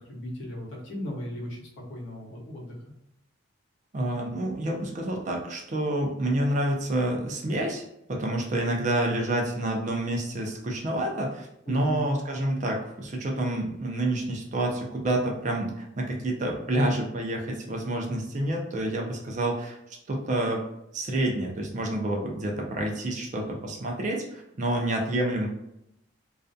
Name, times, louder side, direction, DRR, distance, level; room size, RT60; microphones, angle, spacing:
voice 1, 0.0-2.7 11.7-12.0, left 1 dB, 65° left, -3 dB, 0.8 m, -36 dB
voice 2, 3.9-19.8 20.1-20.6 20.9-25.5, right 1 dB, 35° right, 0 dB, 0.4 m, -28 dB
2.4 x 2.2 x 2.5 m, 0.83 s
head